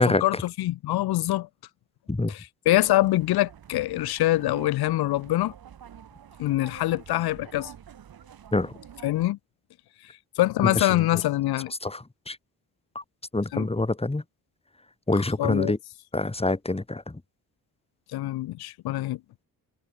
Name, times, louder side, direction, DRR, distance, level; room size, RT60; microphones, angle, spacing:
voice 1, 0.0-1.5 2.3-5.5 6.4-7.7 9.0-9.4 10.0-11.7 13.5-13.7 15.2-15.7 18.1-19.2, left 16 dB, 90° left, 0.6 m, -25 dB
sound 1, 2.7-9.3, right 9 dB, 75° right, 3.6 m, -47 dB
voice 2, 11.8-12.4 13.0-13.1 13.3-14.2 15.1-15.8 16.1-17.2, left 2 dB, 15° left, 1.9 m, -25 dB
cardioid pair, 60°, 37 cm